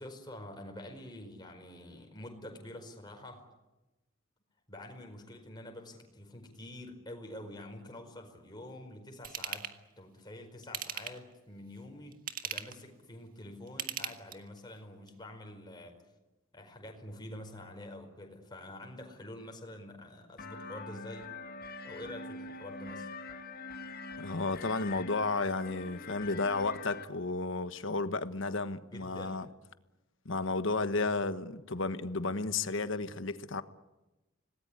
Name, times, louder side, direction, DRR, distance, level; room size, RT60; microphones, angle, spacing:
voice 1, 0.0-3.4 4.7-12.2 12.4-16.0 16.5-21.3 21.8-23.1 28.9-29.4, left 1 dB, 20° left, 4.9 m, -47 dB
Ratchet pawl / Tools, 9.2-9.8 10.6-11.3 12.1-12.8 13.7-14.6 15.1-15.2, right 8 dB, 45° right, 1.7 m, -38 dB
sound 1, 20.4-27.0, left 3 dB, 50° left, 1.9 m, -44 dB
voice 2, 24.2-29.4 30.2-33.6, left 3 dB, 70° left, 1.3 m, -33 dB
26.5 x 19.0 x 9.9 m
head